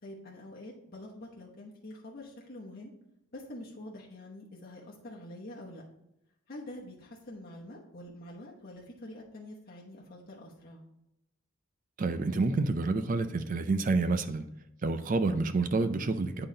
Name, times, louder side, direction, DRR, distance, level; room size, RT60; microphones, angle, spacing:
voice 1, 0.0-2.9 3.3-5.8 6.5-10.8, left 1 dB, 40° left, -4 dB, 1.0 m, -46 dB
voice 2, 12.0-14.4 14.8-16.5, right 3 dB, 35° right, 10 dB, 0.4 m, -28 dB
8.4 x 3.9 x 3.8 m, 0.85 s
head